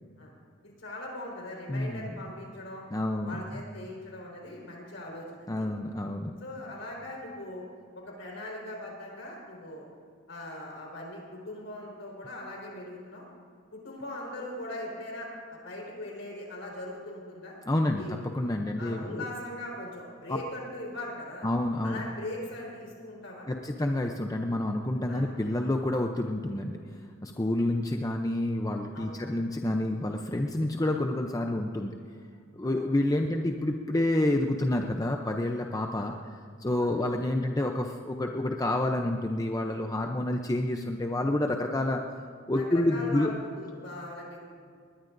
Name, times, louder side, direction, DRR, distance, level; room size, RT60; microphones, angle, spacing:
voice 1, 0.6-2.8 3.2-5.7 6.4-7.7 7.9-9.9 10.3-13.2 13.7-17.5 18.0-18.2 18.8-21.5 21.8-23.7 25.1-25.3 28.9-29.2 32.6-32.8 36.0-36.1 36.8-37.0 42.5-44.4, left 1 dB, 70° left, -2 dB, 4.6 m, -40 dB
voice 2, 1.7-2.1 2.9-3.4 5.5-6.4 17.7-19.2 20.3-20.4 21.4-22.0 23.5-26.8 27.2-31.9 32.5-36.1 36.6-42.0 42.5-43.3, left 1 dB, 20° left, 3 dB, 0.6 m, -28 dB
20.5 x 20.0 x 2.6 m, 2.2 s
head